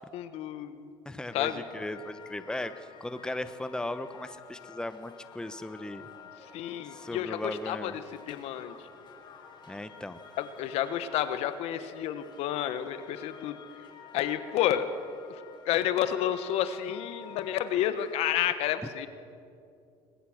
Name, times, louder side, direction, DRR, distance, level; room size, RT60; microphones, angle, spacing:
voice 1, 0.1-0.9 1.3-1.6 6.4-8.8 10.4-13.6 14.1-14.9 15.3-15.4 15.6-19.1, left 11 dB, 70° left, 11 dB, 1.2 m, -30 dB
voice 2, 1.0-6.1 6.9-7.9 9.7-10.2, left 1 dB, 5° left, 12 dB, 1.1 m, -37 dB
sound 1, 1.3-18.5, left 6 dB, 45° left, 4.7 m, -51 dB
21.5 x 21.0 x 6.5 m, 2.5 s
supercardioid pair, 80°, 11 cm